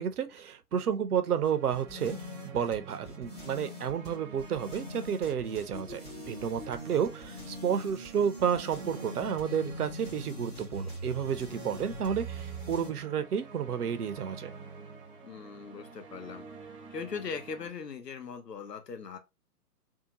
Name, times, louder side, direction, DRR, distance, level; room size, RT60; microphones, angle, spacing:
voice 1, 0.0-2.2 2.5-6.0 6.3-14.5, right 8 dB, 70° right, 0.6 m, -31 dB
sound 1, 1.1-17.7, right 5 dB, 20° right, 0.7 m, -49 dB
sound 2, 1.4-12.9, left 1 dB, 20° left, 0.5 m, -43 dB
voice 2, 15.2-16.5 16.9-19.2, left 5 dB, 85° left, 0.8 m, -40 dB
2.7 x 2.2 x 2.8 m
figure-of-eight pair, 130°, 47 cm